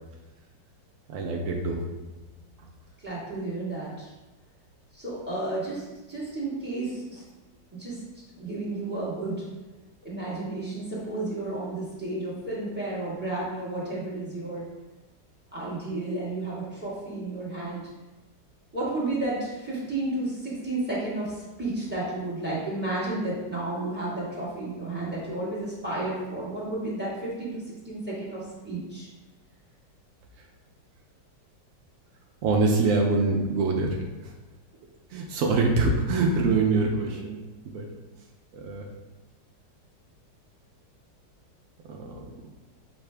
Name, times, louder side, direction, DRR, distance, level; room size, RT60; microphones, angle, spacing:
voice 1, 1.1-1.8 32.4-34.3 35.1-37.4 37.7-37.9 38.5-38.9 41.9-42.3, right 3 dB, 80° right, 0 dB, 0.7 m, -25 dB
voice 2, 3.0-4.1 4.9-7.2 7.7-8.0 8.3-9.4 10.0-14.7 15.5-17.8 18.7-29.1, right 2 dB, 5° right, -8 dB, 1.1 m, -32 dB
6.4 x 2.5 x 3.3 m, 1.1 s
omnidirectional pair, 1.9 m